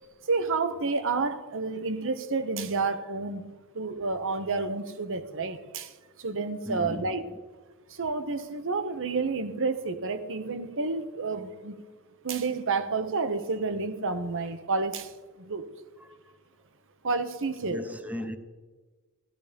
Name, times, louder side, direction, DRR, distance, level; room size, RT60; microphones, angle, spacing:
voice 1, 0.3-5.9 6.2-7.2 7.9-11.8 12.2-15.7 17.0-17.8, right 4 dB, 60° right, 1.1 m, -30 dB
voice 2, 6.7-7.3 16.0-16.2 17.6-18.4, equal, 5° right, 0.9 m, -37 dB
16.5 x 13.5 x 5.2 m
head